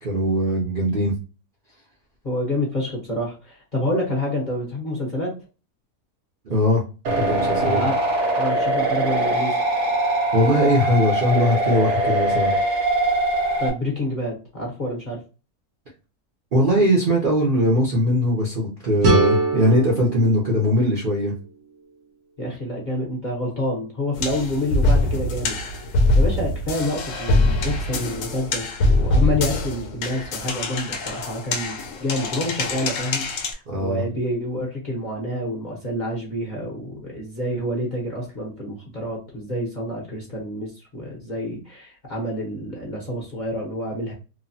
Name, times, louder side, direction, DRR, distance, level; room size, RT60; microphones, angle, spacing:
voice 1, 0.0-1.1 6.5-7.8 10.3-12.5 16.5-21.3 33.7-34.0, equal, 45° right, -4 dB, 0.7 m, -20 dB
voice 2, 2.2-5.4 7.6-8.0 8.4-9.6 13.6-15.2 22.4-25.6 26.1-44.1, left 1 dB, 40° left, -3 dB, 0.8 m, -28 dB
sound 1, 7.1-13.7, right 1 dB, 85° right, 1.4 m, -22 dB
sound 2, 19.0-21.9, right 2 dB, 65° right, 1.2 m, -24 dB
sound 3, 24.1-33.5, left 2 dB, 65° left, 0.9 m, -23 dB
3.0 x 2.2 x 2.6 m, 0.32 s
omnidirectional pair, 1.6 m